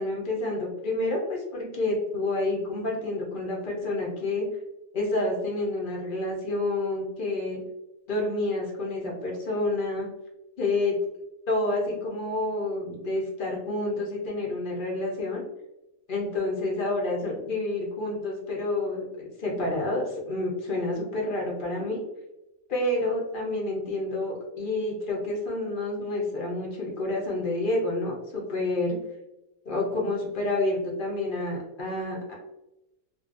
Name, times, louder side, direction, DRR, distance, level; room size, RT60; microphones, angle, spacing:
voice 1, 0.0-4.5 4.9-7.6 8.1-10.1 10.6-11.0 11.5-15.4 16.1-22.0 22.7-29.0 29.7-32.3, left 2 dB, 50° left, -2 dB, 0.6 m, -29 dB
2.7 x 2.4 x 2.4 m, 0.93 s
omnidirectional pair, 1.4 m